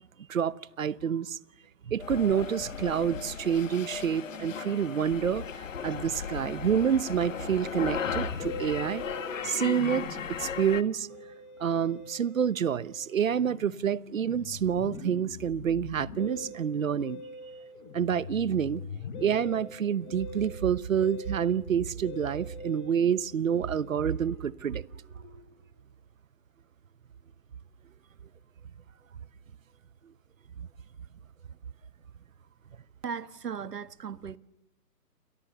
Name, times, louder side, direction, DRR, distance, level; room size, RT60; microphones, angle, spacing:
voice 1, 0.3-1.4 1.9-9.0 9.4-11.1 11.6-17.2 17.9-18.8 19.2-24.8 30.6-30.7, right 8 dB, 55° right, 1.0 m, -28 dB
sound 1, 2.0-10.8, left 7 dB, 50° left, 1.7 m, -36 dB
Musical instrument, 8.0-25.6, left 3 dB, 30° left, 5.9 m, -43 dB
voice 2, 33.0-34.4, right 6 dB, 75° right, 1.7 m, -37 dB
29.0 x 29.0 x 7.0 m
hypercardioid pair, 170°, 48 cm